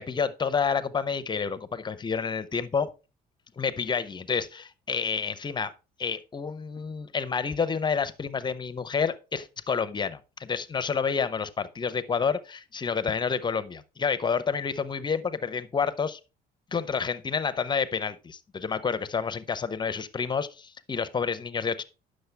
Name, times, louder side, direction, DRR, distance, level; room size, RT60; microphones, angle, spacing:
voice 1, 0.0-2.9 3.6-5.7 6.0-16.2 16.7-21.8, left 6 dB, 25° left, 0.7 m, -29 dB
9.4 x 6.4 x 3.4 m
cardioid pair, 110°, 17 cm